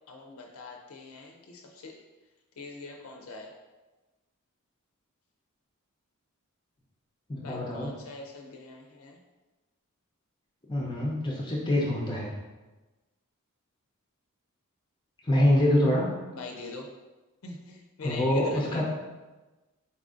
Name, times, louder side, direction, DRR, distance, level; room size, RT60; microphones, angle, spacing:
voice 1, 0.1-2.0 2.6-3.5 7.4-9.2 16.3-16.9 17.4-18.8, left 3 dB, 70° left, 1 dB, 0.5 m, -42 dB
voice 2, 7.3-7.9 10.7-12.3 15.2-16.1 18.0-18.8, left 1 dB, 20° left, -3 dB, 0.5 m, -25 dB
4.2 x 2.5 x 3.6 m, 1.1 s
head